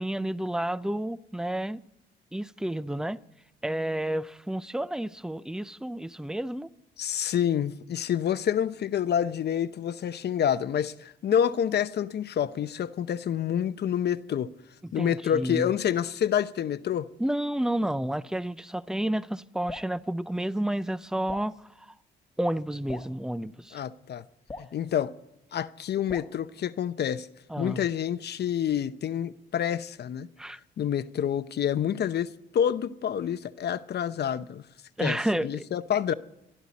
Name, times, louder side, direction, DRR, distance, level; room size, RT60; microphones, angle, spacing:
voice 1, 0.0-1.8 2.3-3.2 3.6-6.7 15.0-15.7 17.2-21.9 22.4-23.8 27.5-27.8 30.4-30.6 35.0-35.7, right 1 dB, 5° right, 0.5 m, -30 dB
voice 2, 7.0-14.5 14.9-17.1 23.7-24.2 24.7-25.1 25.5-27.3 27.6-30.3 30.8-34.6 35.0-36.1, left 9 dB, 55° left, 0.8 m, -28 dB
Drip, 19.7-19.9 21.3-21.5 22.9-23.1 24.5-24.7 26.1-26.4, left 2 dB, 20° left, 1.2 m, -40 dB
28.0 x 11.5 x 4.2 m
cardioid pair, 90°, 20 cm